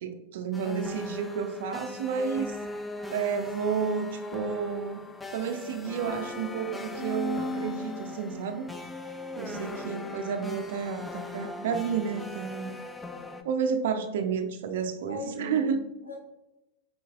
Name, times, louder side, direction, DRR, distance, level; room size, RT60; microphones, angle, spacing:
voice 1, 0.0-2.6 3.1-4.0 4.3-5.1 5.3-8.6 9.4-12.7 13.4-15.8, right 6 dB, 55° right, 7 dB, 0.4 m, -31 dB
sound 1, 0.5-13.4, left 2 dB, 10° left, 0.4 m, -38 dB
voice 2, 9.4-10.1 15.0-15.6 16.0-16.1, left 2 dB, 80° left, -2 dB, 1.2 m, -40 dB
5.2 x 3.7 x 2.4 m, 0.91 s
figure-of-eight pair, 90°, 0 cm